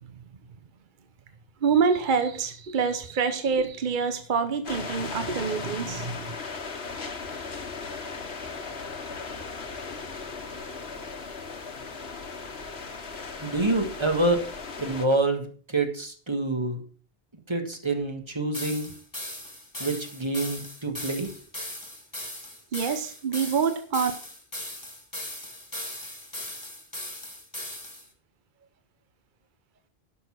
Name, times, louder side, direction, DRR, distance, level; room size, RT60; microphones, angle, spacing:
voice 1, 1.6-6.3 22.7-24.1, right 5 dB, 55° right, 9 dB, 1.0 m, -26 dB
sound 1, 4.6-15.1, left 4 dB, 85° left, 1.6 m, -37 dB
voice 2, 13.4-14.4 14.8-16.8 17.5-18.9 19.8-21.3, right 2 dB, 25° right, 5 dB, 1.7 m, -27 dB
sound 2, 18.5-28.1, left 1 dB, 20° left, 2.2 m, -38 dB
11.5 x 6.4 x 6.0 m, 0.43 s
omnidirectional pair, 1.0 m